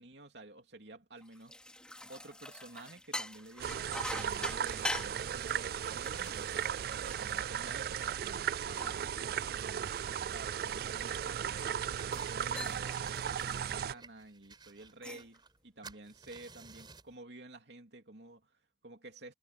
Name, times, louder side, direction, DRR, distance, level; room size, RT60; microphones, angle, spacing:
voice 1, 0.0-1.6 2.1-6.6 6.9-9.9 10.3-19.3, right 2 dB, 75° right, 2.9 m, -52 dB
sound 1, 1.2-8.0 8.5-11.5 12.0-12.3 12.6-13.0 13.4-13.7 14.8-15.4, left 1 dB, 5° left, 2.9 m, -44 dB
sound 2, 3.6-13.9, right 8 dB, 55° right, 0.3 m, -36 dB
sound 3, 11.6-12.5 12.9-15.6 15.8-17.1, right 4 dB, 25° right, 6.3 m, -54 dB
head